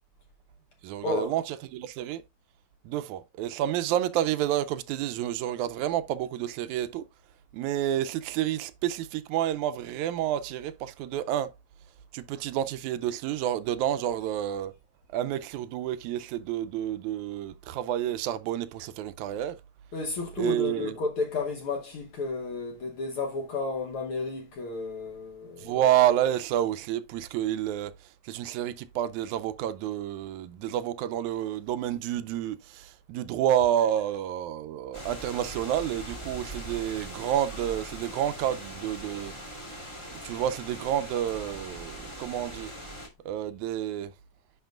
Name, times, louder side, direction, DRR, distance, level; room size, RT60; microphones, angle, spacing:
voice 1, 0.8-2.2 2.9-7.0 7.5-11.5 12.1-14.7 15.1-19.6 20.4-21.0 25.6-27.9 28.2-39.3 40.2-42.7 43.3-44.1, right 11 dB, 80° right, 1.9 m, -29 dB
voice 2, 19.9-25.7, left 3 dB, 65° left, 1.4 m, -32 dB
sound 1, 34.9-43.1, right 1 dB, 15° left, 1.0 m, -41 dB
10.5 x 4.5 x 2.3 m
omnidirectional pair, 3.4 m